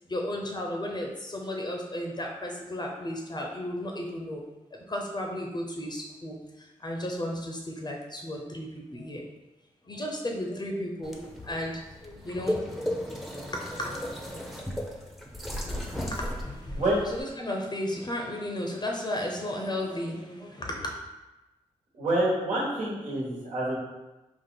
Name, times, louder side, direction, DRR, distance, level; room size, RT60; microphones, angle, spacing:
voice 1, 0.1-4.4 4.9-6.4 6.8-9.2 9.9-12.6 13.5-13.9 16.1-20.9, left 1 dB, 35° left, 0 dB, 0.7 m, -34 dB
sound 1, 11.0-17.2, equal, ahead, 0.7 m, -35 dB
voice 2, 22.0-23.7, right 1 dB, 70° right, -6 dB, 1.4 m, -27 dB
3.8 x 2.4 x 3.9 m, 1.1 s
cardioid pair, 45°, 13 cm